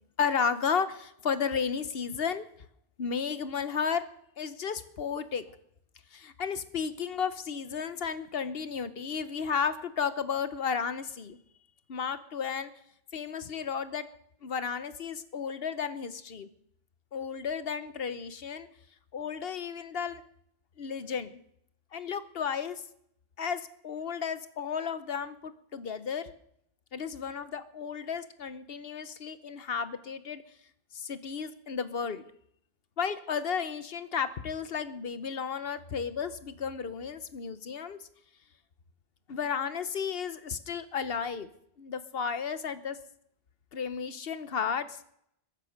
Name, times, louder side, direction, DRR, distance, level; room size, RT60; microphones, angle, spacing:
voice 1, 0.2-2.5 3.0-4.0 4.4-5.4 6.1-11.4 11.9-12.7 13.1-14.1 14.4-16.5 17.1-18.7 19.1-20.2 20.8-21.4 21.9-22.8 23.4-26.3 26.9-30.4 30.9-32.2 33.0-38.0 39.3-41.5 41.8-43.0 43.7-45.0, left 6 dB, 70° left, 13 dB, 1.2 m, -33 dB
22.0 x 8.2 x 6.5 m, 0.72 s
omnidirectional pair, 1.0 m